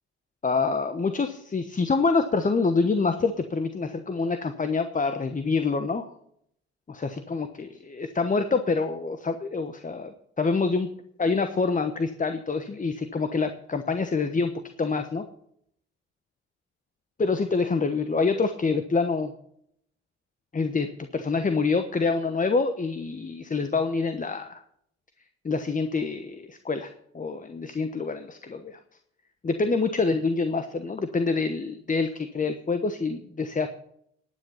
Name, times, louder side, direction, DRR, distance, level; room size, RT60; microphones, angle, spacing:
voice 1, 0.4-6.0 6.9-10.9 11.2-14.5 14.8-15.2 17.2-19.3 20.5-24.6 25.4-28.8 29.4-33.7, left 4 dB, 25° left, 9 dB, 1.1 m, -26 dB
10.5 x 9.5 x 5.7 m, 0.70 s
hypercardioid pair, 55°, 33 cm